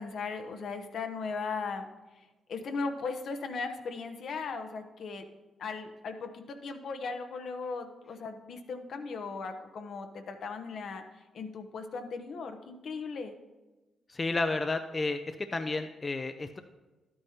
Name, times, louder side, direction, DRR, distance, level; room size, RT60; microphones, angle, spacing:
voice 1, 0.0-1.9 2.5-5.3 5.6-11.0 11.3-13.3, left 4 dB, 70° left, 6 dB, 0.9 m, -37 dB
voice 2, 14.1-16.6, left 3 dB, 35° left, 7 dB, 0.6 m, -31 dB
11.5 x 8.7 x 2.9 m, 1.1 s
supercardioid pair, 55°, 0 cm